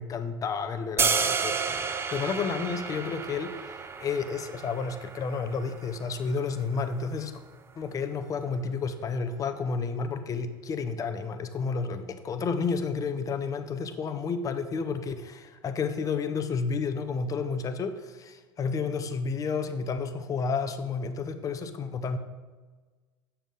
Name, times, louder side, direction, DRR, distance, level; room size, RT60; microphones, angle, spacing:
voice 1, 0.0-7.3 7.8-22.2, left 5 dB, 30° left, 9 dB, 0.6 m, -31 dB
sound 1, 1.0-7.1, right 5 dB, 20° right, 0.5 m, -31 dB
7.1 x 5.6 x 3.7 m, 1.3 s
hypercardioid pair, 80°, 12 cm